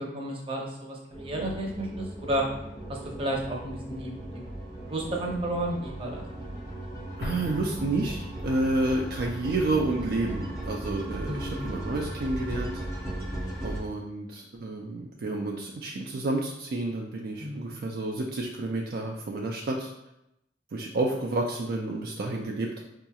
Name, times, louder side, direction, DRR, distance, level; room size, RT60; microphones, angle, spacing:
voice 1, 0.0-2.5 2.9-4.4 4.8-6.2 11.3-11.7 17.4-17.7, right 1 dB, 30° right, -1 dB, 0.7 m, -32 dB
sound 1, 1.1-13.8, right 1 dB, 20° left, 0.7 m, -37 dB
Explosion, 7.2-8.9, left 2 dB, 60° left, 0.4 m, -40 dB
voice 2, 7.2-12.7 13.6-19.9 20.7-22.8, right 2 dB, 55° right, 0 dB, 0.4 m, -30 dB
4.8 x 2.8 x 2.3 m, 0.85 s
head